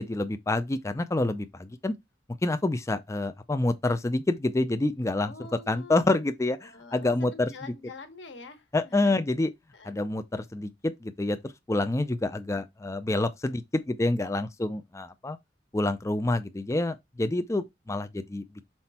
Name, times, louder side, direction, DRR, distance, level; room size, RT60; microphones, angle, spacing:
voice 1, 0.0-1.9 2.4-5.3 5.7-7.5 8.7-9.5 9.8-15.4 15.7-18.7, left 2 dB, 15° left, 0.4 m, -28 dB
voice 2, 5.2-6.2 6.6-9.2 9.7-10.0, left 3 dB, 90° left, 1.4 m, -46 dB
5.8 x 4.4 x 4.2 m
head